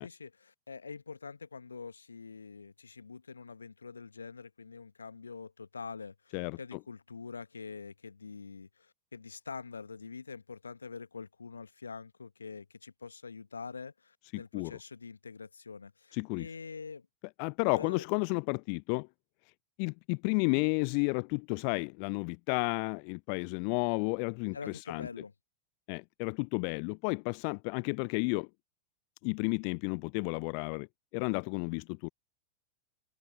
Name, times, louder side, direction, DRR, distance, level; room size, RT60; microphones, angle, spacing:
voice 1, 0.0-17.1 17.7-18.0 24.5-25.3, left 5 dB, 75° left, 1.5 m, -45 dB
voice 2, 6.3-6.8 14.3-14.7 16.1-16.5 17.4-19.1 19.8-25.1 25.9-28.5 29.2-30.9 31.1-32.1, left 40 dB or more, 45° left, 0.4 m, -32 dB
figure-of-eight pair, 90°, 0 cm